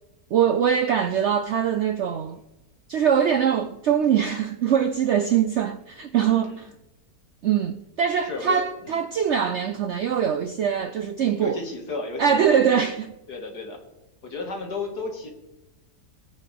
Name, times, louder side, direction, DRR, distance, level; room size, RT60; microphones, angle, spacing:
voice 1, 0.3-2.4 2.9-6.7 7.4-11.6 12.2-13.1, right 8 dB, 70° right, 0.6 m, -23 dB
voice 2, 6.2-6.7 8.2-8.6 8.9-9.0 11.4-12.9 13.3-13.8 14.2-15.3, left 3 dB, 75° left, 2.6 m, -33 dB
21.0 x 8.5 x 3.5 m
omnidirectional pair, 1.7 m